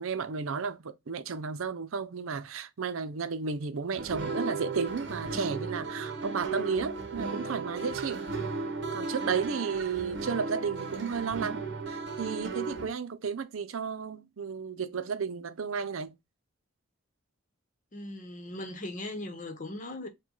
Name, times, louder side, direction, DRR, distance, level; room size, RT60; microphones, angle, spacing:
voice 1, 0.0-8.2 8.9-16.1, right 5 dB, 75° right, 0.5 m, -33 dB
sound 1, 4.0-12.9, right 4 dB, 60° right, 0.9 m, -35 dB
voice 2, 17.9-20.1, left 1 dB, 40° left, 0.9 m, -39 dB
5.0 x 2.3 x 3.8 m
head